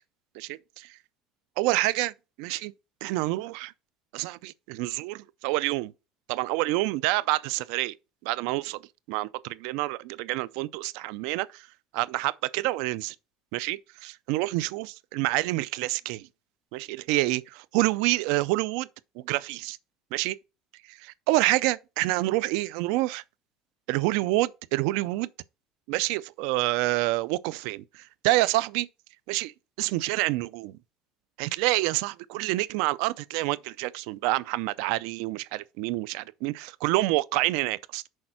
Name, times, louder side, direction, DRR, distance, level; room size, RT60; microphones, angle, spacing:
voice 1, 0.3-1.0 1.6-2.7 3.0-3.7 4.1-5.9 6.3-8.0 8.2-8.8 9.1-11.7 11.9-13.2 13.5-16.3 16.7-18.9 19.2-19.8 20.1-20.4 20.9-23.2 23.9-25.3 25.9-28.9 29.3-30.8 31.4-38.0, right 19 dB, 75° right, 0.4 m, -28 dB
6.4 x 4.3 x 5.7 m
cardioid pair, 145°, 0 cm